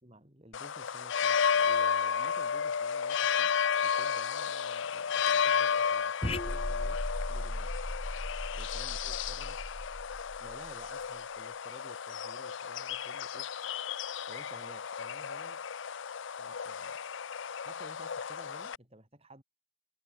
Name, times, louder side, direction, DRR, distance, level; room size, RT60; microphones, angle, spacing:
voice 1, 0.0-3.5 3.8-7.7 8.5-9.7 10.4-13.7 14.3-15.7 16.4-17.0 17.6-19.4, right 1 dB, 30° right, 4.0 m, -54 dB
sound 1, 0.5-18.8, left 7 dB, 65° left, 0.6 m, -33 dB
sound 2, 6.2-10.9, left 1 dB, 30° left, 1.9 m, -37 dB
head